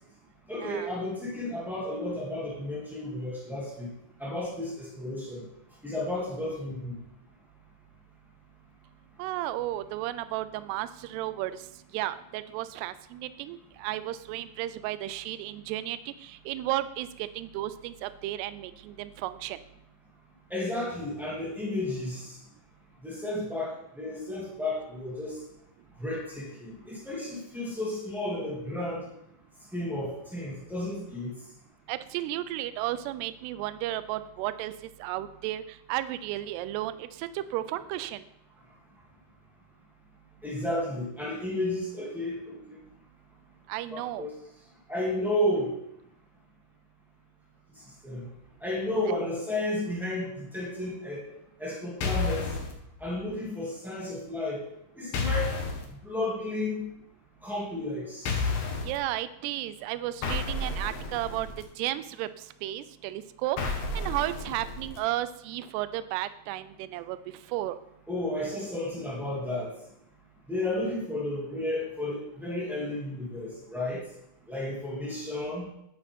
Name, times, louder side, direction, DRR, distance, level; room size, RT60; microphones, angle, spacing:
voice 1, 0.5-3.9 4.2-5.5 5.8-7.0 20.5-22.4 23.0-25.4 26.0-29.0 29.7-31.3 40.4-42.8 43.9-44.3 44.9-45.7 48.0-48.3 48.6-51.2 51.6-52.5 53.0-54.6 54.9-55.5 56.0-56.9 57.4-58.4 68.1-69.7 70.5-74.0 74.5-75.7, left 1 dB, ahead, -5 dB, 0.4 m, -32 dB
voice 2, 9.2-11.7 11.9-19.6 31.9-34.7 35.0-38.2 43.7-44.3 49.1-49.2 58.8-61.5 61.8-63.6 63.9-67.2 67.5-67.8, right 14 dB, 85° right, 13 dB, 2.4 m, -33 dB
sound 1, 52.0-52.7 55.1-55.8 58.2-59.0 60.2-61.6 63.6-65.0, left 3 dB, 65° left, 2.7 m, -31 dB
10.0 x 8.9 x 3.6 m, 0.78 s
omnidirectional pair, 5.2 m